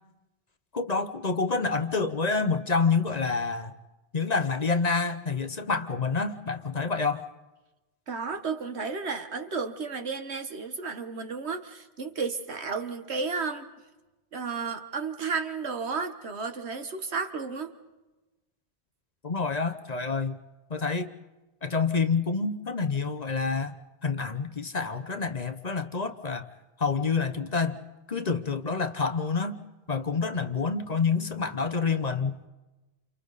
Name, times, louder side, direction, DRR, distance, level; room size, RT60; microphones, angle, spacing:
voice 1, 0.7-3.7 4.1-7.2 19.2-20.4 20.7-21.1 21.6-23.7 24.0-26.4 26.8-27.8 28.1-29.6 29.9-32.4, left 4 dB, 40° left, 9 dB, 1.0 m, -27 dB
voice 2, 8.1-13.7 14.3-17.7, right 4 dB, 90° right, 7 dB, 1.7 m, -33 dB
29.0 x 29.0 x 4.1 m, 1.1 s
omnidirectional pair, 1.1 m